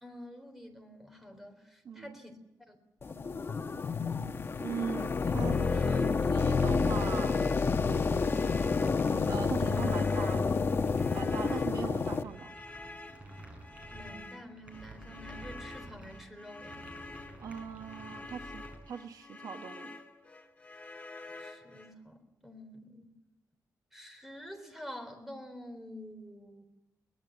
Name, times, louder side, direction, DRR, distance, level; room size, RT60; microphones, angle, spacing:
voice 1, 0.0-2.3 2.7-2.8 3.1-3.4 13.9-16.8 21.3-23.1 23.9-26.6, equal, 5° right, 5 dB, 3.7 m, -48 dB
voice 2, 1.8-2.2 4.6-7.6 9.3-10.6 11.1-12.5 17.4-20.0, right 7 dB, 70° right, 6 dB, 1.3 m, -40 dB
sound 1, 3.0-12.2, left 4 dB, 35° left, 1.0 m, -29 dB
sound 2, 5.3-18.8, right 1 dB, 20° right, 6.5 m, -50 dB
sound 3, 5.5-21.9, left 3 dB, 20° left, 2.0 m, -49 dB
23.5 x 18.5 x 7.9 m, 0.97 s
wide cardioid pair, 170°, 7 cm